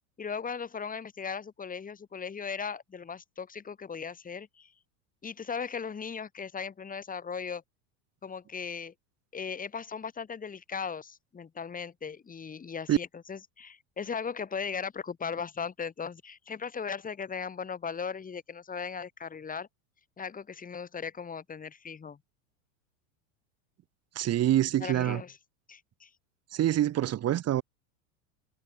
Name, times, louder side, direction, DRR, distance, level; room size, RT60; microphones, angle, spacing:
voice 1, 0.2-4.7 5.2-7.6 8.2-8.9 9.3-19.7 20.2-22.2 24.8-25.4 25.7-26.1, left 6 dB, 20° left, 6.1 m, -37 dB
voice 2, 24.2-25.2 26.5-27.6, right 12 dB, 35° right, 5.9 m, -26 dB
supercardioid pair, 130°, 42 cm